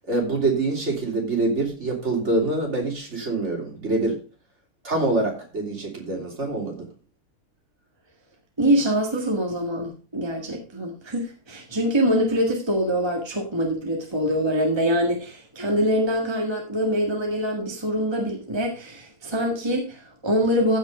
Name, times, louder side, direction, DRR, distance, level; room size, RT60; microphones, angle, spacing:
voice 1, 0.1-4.2 4.8-6.8, right 2 dB, 45° right, 0 dB, 3.5 m, -25 dB
voice 2, 8.6-20.8, equal, 15° right, 1 dB, 1.8 m, -24 dB
15.0 x 5.6 x 4.9 m, 0.35 s
omnidirectional pair, 1.6 m